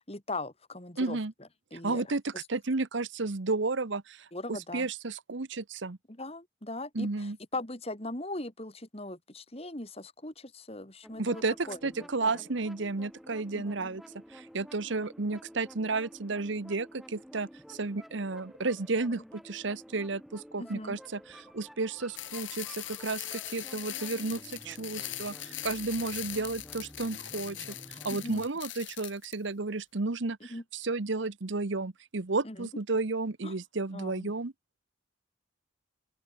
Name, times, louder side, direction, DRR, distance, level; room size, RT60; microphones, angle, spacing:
voice 1, 0.0-2.5 4.3-4.9 6.1-12.4 13.5-13.9 19.1-19.2 20.6-21.0 28.1-28.4 30.4-30.6 32.4-32.7 33.4-33.5 33.9-34.3, left 2 dB, 30° left, 3.0 m, -40 dB
voice 2, 1.0-1.3 1.8-6.0 6.9-7.4 11.2-11.5 11.8-14.0 14.3-27.6 27.9-34.5, right 3 dB, 70° right, 1.0 m, -32 dB
sound 1, 11.0-28.5, equal, ahead, 4.7 m, -51 dB
sound 2, 22.2-29.3, left 14 dB, 75° left, 2.6 m, -41 dB
open air
head